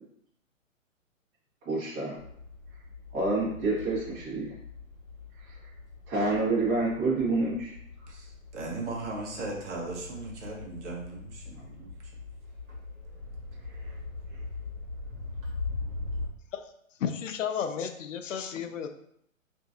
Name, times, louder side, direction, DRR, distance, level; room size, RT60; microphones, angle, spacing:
voice 1, 1.6-2.2 3.1-4.5 5.4-5.7 6.1-7.7 13.8-13.9, right 2 dB, 30° right, -7 dB, 1.3 m, -28 dB
sound 1, 2.1-16.3, left 3 dB, 80° right, 1.1 m, -41 dB
voice 2, 8.1-11.9, right 3 dB, 60° right, -1 dB, 0.9 m, -38 dB
voice 3, 17.0-18.9, left 7 dB, 70° left, 7 dB, 0.5 m, -32 dB
2.9 x 2.6 x 2.5 m, 0.71 s
hypercardioid pair, 135°, 40 cm